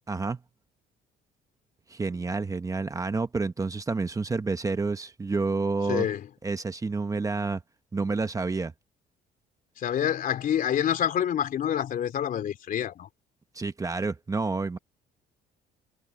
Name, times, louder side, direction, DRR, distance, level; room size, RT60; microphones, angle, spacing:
voice 1, 0.1-0.4 1.9-6.1 6.4-7.6 7.9-8.7 13.5-14.8, right 3 dB, 20° right, 1.1 m, -29 dB
voice 2, 5.9-6.3 9.8-13.1, left 9 dB, 55° left, 3.2 m, -27 dB
cardioid pair, 110°, 17 cm